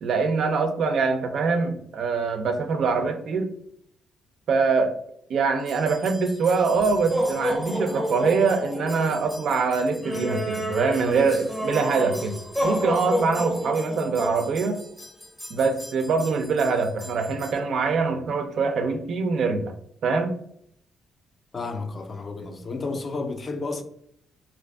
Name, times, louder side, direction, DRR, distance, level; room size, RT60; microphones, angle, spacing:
voice 1, 0.0-3.5 4.5-4.9 5.3-14.8 15.5-19.7 20.0-20.3, right 4 dB, 65° right, 0.3 m, -24 dB
sound 1, 5.7-17.6, equal, ahead, 0.6 m, -31 dB
voice 2, 21.5-23.8, left 3 dB, 35° left, 0.3 m, -31 dB
2.4 x 2.3 x 2.2 m
cardioid pair, 90°, 0 cm